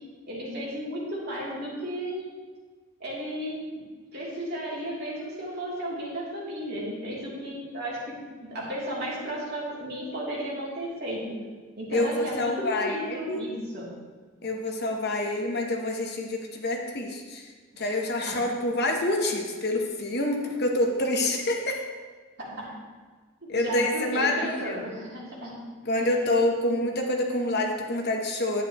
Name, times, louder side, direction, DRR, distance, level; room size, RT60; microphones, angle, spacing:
voice 1, 0.3-2.2 3.0-3.5 4.1-8.0 8.5-11.2 11.8-13.9 17.7-18.4 22.5-22.6 23.6-25.5, equal, 45° right, -7 dB, 3.1 m, -34 dB
voice 2, 11.9-13.4 14.4-17.5 17.8-21.8 23.5-24.7 25.8-28.6, left 1 dB, 45° left, 2 dB, 1.0 m, -27 dB
11.0 x 9.3 x 3.0 m, 1.5 s
head